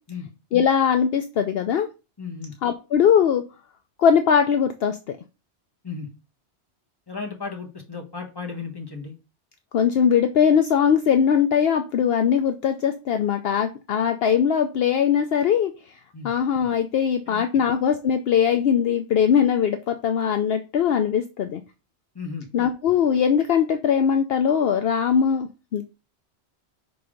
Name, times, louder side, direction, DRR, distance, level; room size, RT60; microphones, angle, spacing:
voice 1, 0.5-1.9 2.6-3.4 4.0-5.2 9.7-15.7 16.2-21.6 22.5-25.9, left 7 dB, 65° left, 7 dB, 0.8 m, -21 dB
voice 2, 2.2-2.5 5.8-6.1 7.1-9.1 16.1-16.3 17.3-17.4 22.1-22.5, left 5 dB, 20° left, 0 dB, 1.4 m, -34 dB
5.7 x 4.0 x 5.0 m, 0.31 s
omnidirectional pair, 1.1 m